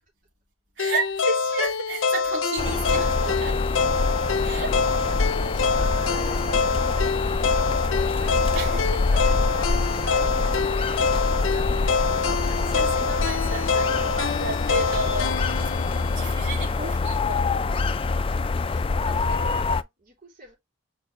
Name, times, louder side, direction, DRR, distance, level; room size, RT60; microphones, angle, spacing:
sound 1, 0.8-16.9, left 4 dB, 85° left, 0.6 m, -26 dB
voice 1, 0.8-3.6 4.4-4.8 8.5-9.2 10.8-11.0 11.3-11.4 11.8-11.9 12.4-17.5, right 2 dB, 70° right, 2.9 m, -33 dB
sound 2, 2.6-19.8, left 3 dB, 30° left, 0.4 m, -25 dB
voice 2, 4.3-12.5 17.7-18.0 18.3-20.6, equal, 45° right, 3.7 m, -45 dB
6.5 x 4.5 x 3.3 m
head